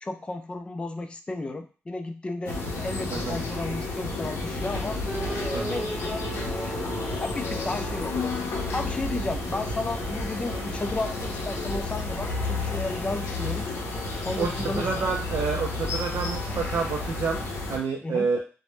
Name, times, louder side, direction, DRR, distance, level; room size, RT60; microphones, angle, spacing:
voice 1, 0.0-5.0 5.4-6.8 7.2-8.3 8.7-13.7 14.2-14.9 18.0-18.3, left 2 dB, 25° left, 5 dB, 0.3 m, -33 dB
sound 1, 2.5-17.8, left 2 dB, 85° left, 0.6 m, -31 dB
sound 2, 5.0-10.0, right 1 dB, 15° right, 0.8 m, -39 dB
voice 2, 14.4-17.4 17.7-18.4, right 5 dB, 75° right, 1 dB, 0.3 m, -28 dB
2.0 x 2.0 x 3.0 m, 0.36 s
cardioid pair, 95°, 5 cm